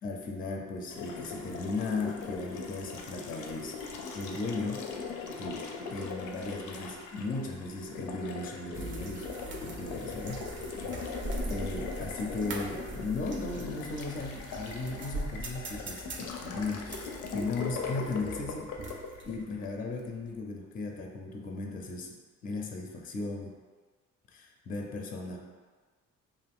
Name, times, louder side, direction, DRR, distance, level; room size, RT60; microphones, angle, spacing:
voice 1, 0.0-3.8 4.1-4.9 5.4-5.6 5.9-9.3 9.6-10.5 11.4-18.7 19.2-22.2 22.4-23.6 24.3-25.4, left 3 dB, 30° left, 1 dB, 0.4 m, -36 dB
Water tap faucet, 0.9-20.1, left 5 dB, 85° left, 0.5 m, -40 dB
sound 1, 8.7-19.4, right 2 dB, 40° right, 0.5 m, -41 dB
2.4 x 2.4 x 3.5 m, 1.5 s
cardioid pair, 90°, 30 cm